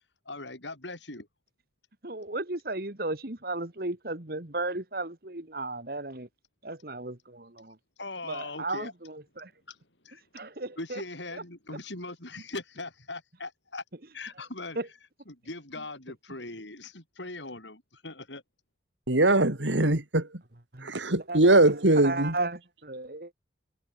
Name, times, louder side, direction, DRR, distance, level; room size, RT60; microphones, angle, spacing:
voice 1, 0.3-1.3 8.0-8.9 9.7-9.8 10.0-10.2 10.8-13.8 14.1-14.8 15.3-18.4, left 2 dB, 80° left, 7.8 m, -40 dB
voice 2, 2.0-6.3 6.6-7.8 8.2-9.5 10.3-11.0 11.3-11.4 11.7-11.8 14.8-14.9 20.7-20.9 21.3-21.6 21.9-23.3, right 2 dB, 55° right, 2.0 m, -35 dB
voice 3, 19.1-20.3 20.8-22.4, right 2 dB, 85° right, 2.9 m, -22 dB
head